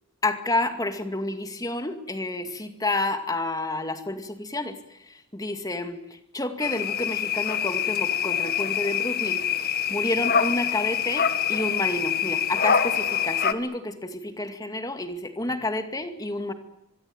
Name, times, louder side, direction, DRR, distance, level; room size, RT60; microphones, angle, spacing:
voice 1, 0.2-16.5, left 2 dB, 15° left, 7 dB, 2.3 m, -30 dB
sound 1, 6.6-13.5, left 8 dB, 45° left, 1.4 m, -25 dB
25.0 x 22.5 x 8.9 m, 0.86 s
head